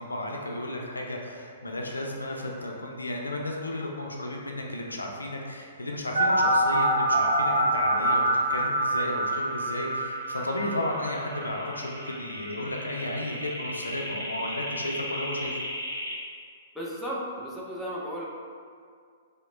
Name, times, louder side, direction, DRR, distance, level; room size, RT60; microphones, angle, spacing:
voice 1, 0.0-8.2 8.5-15.6, left 1 dB, 90° left, 0 dB, 0.4 m, -33 dB
sound 1, 6.2-16.1, right 1 dB, 70° right, 0.9 m, -27 dB
voice 2, 16.7-18.2, equal, ahead, -6 dB, 0.6 m, -34 dB
2.9 x 2.1 x 3.7 m, 2.2 s
figure-of-eight pair, 115°, 0 cm